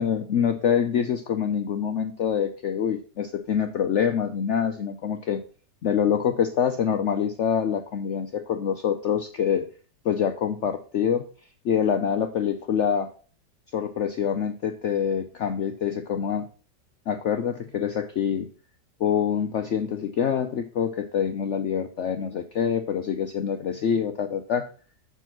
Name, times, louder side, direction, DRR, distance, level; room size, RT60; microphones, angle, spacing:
voice 1, 0.0-5.4 5.8-9.7 10.0-11.3 11.6-13.1 13.7-16.5 17.1-18.5 19.0-24.7, left 8 dB, 85° left, 6 dB, 0.6 m, -25 dB
6.9 x 4.7 x 5.8 m, 0.40 s
omnidirectional pair, 2.0 m